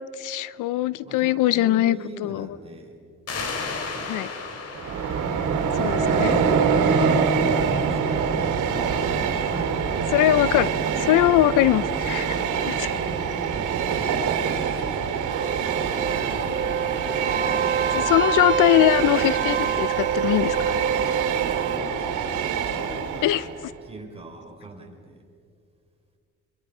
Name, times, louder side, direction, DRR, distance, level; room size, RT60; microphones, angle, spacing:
voice 1, 0.2-2.6 4.0-4.3 5.7-6.4 10.1-10.7 11.0-12.3 12.6-12.9 17.9-20.6 23.2-23.7, left 14 dB, 90° left, 18 dB, 0.6 m, -21 dB
voice 2, 1.0-2.9 3.3-4.6 9.5-10.1 12.9-15.2 15.7-16.5 21.6-22.2 22.5-23.3 23.8-25.1, right 2 dB, 20° right, 1 dB, 4.5 m, -43 dB
sound 1, 3.3-6.6, left 4 dB, 55° left, 3.0 m, -34 dB
Train, 4.7-23.6, right 6 dB, 80° right, 2.8 m, -25 dB
sound 2, 15.3-21.8, right 7 dB, 40° right, 1.1 m, -27 dB
28.0 x 24.0 x 4.9 m, 2.3 s
cardioid pair, 90°, 30 cm